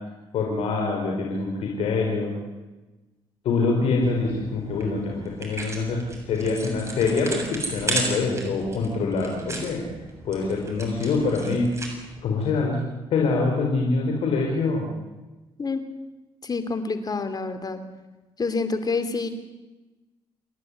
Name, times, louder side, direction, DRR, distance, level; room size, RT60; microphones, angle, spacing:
voice 1, 0.3-2.3 3.4-9.8 10.2-11.7 12.2-12.8 13.1-14.9, left 4 dB, 80° left, 0 dB, 4.5 m, -25 dB
sound 1, 4.0-12.2, right 2 dB, 30° right, 7.3 m, -35 dB
voice 2, 16.4-17.8 18.4-19.3, left 4 dB, 40° left, 10 dB, 3.0 m, -27 dB
28.5 x 11.5 x 9.9 m, 1.1 s
cardioid pair, 75°, 10 cm